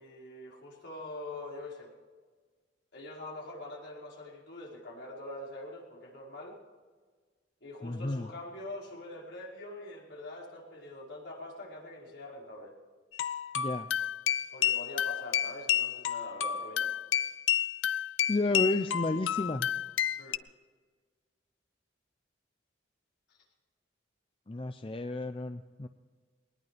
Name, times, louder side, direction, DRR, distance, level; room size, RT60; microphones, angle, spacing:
voice 1, 0.0-1.9 2.9-6.6 7.6-12.7 14.5-16.9 20.2-20.4 23.3-23.4, left 2 dB, 70° left, -3 dB, 5.0 m, -44 dB
voice 2, 7.8-8.3 13.6-13.9 18.3-19.7 24.5-25.9, left 2 dB, 30° left, 8 dB, 0.5 m, -31 dB
sound 1, 13.1-20.4, left 10 dB, 85° left, 0.5 m, -31 dB
20.5 x 20.0 x 3.4 m, 1.5 s
head